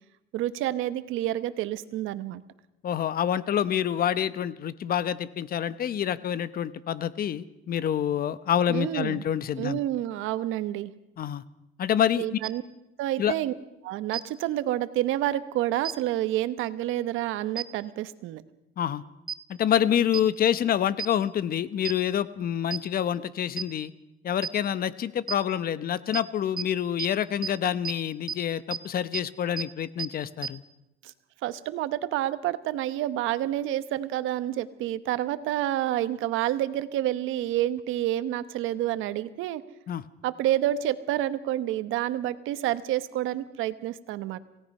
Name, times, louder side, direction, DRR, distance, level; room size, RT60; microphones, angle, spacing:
voice 1, 0.3-2.4 8.7-9.2 9.6-10.9 12.2-12.6 13.0-13.5 13.8-18.4 31.0-31.1 31.4-39.6 40.2-44.4, right 13 dB, 85° right, 13 dB, 1.1 m, -29 dB
voice 2, 2.8-9.8 11.2-11.4 11.8-12.2 13.2-13.3 18.8-19.0 19.5-23.9 24.2-30.6 39.9-40.0, left 9 dB, 50° left, 16 dB, 0.9 m, -27 dB
sound 1, 12.4-12.5 14.1-14.2 15.8-15.9 17.6-17.7 19.3-19.4 20.1-20.2 21.0-21.1 21.8-21.9 22.7-22.8 23.6-23.7 24.4-24.5 25.3-25.4 26.1-26.2 26.6-26.7 27.0-27.1 27.4-27.5 27.8-27.9 28.3-28.4 28.7-28.8 29.1-29.2 29.6-29.7 30.0-30.1 30.4-30.5, right 7 dB, 25° right, 0.9 m, -31 dB
27.0 x 17.5 x 5.5 m, 0.88 s
cardioid pair, 130°, 20 cm